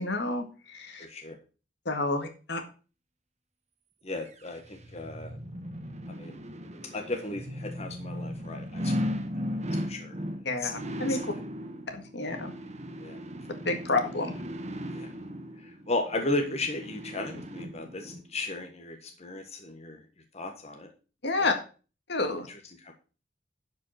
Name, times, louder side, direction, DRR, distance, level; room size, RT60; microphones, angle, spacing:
voice 1, 0.0-1.1 1.9-2.6 10.5-11.2 11.9-12.5 13.7-14.3 21.2-21.5 22.1-22.5, left 3 dB, 65° left, 6 dB, 1.8 m, -29 dB
voice 2, 1.0-1.4 4.0-5.4 6.1-6.4 6.9-9.1 9.4-10.2 10.6-10.8 11.1-11.2 13.0-13.2 14.9-15.1 15.6-20.0 20.3-20.9 21.4-21.5 22.5-22.9, left 2 dB, 35° left, 4 dB, 1.5 m, -35 dB
sound 1, 4.3-18.2 18.6-18.7, equal, 40° right, 1.2 m, -37 dB
11.5 x 5.3 x 5.8 m, 0.35 s
head